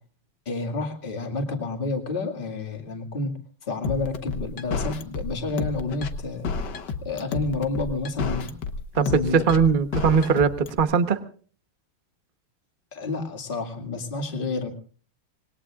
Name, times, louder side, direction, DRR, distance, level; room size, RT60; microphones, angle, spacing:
voice 1, 0.5-6.5 7.0-8.5 9.0-9.4 12.9-14.7, left 3 dB, 25° left, 3 dB, 2.3 m, -30 dB
sound 1, 3.8-10.8, left 4 dB, 55° left, 1.7 m, -30 dB
voice 2, 8.9-11.2, right 6 dB, 35° right, 8 dB, 0.9 m, -20 dB
26.5 x 21.0 x 2.5 m, 0.43 s
omnidirectional pair, 2.4 m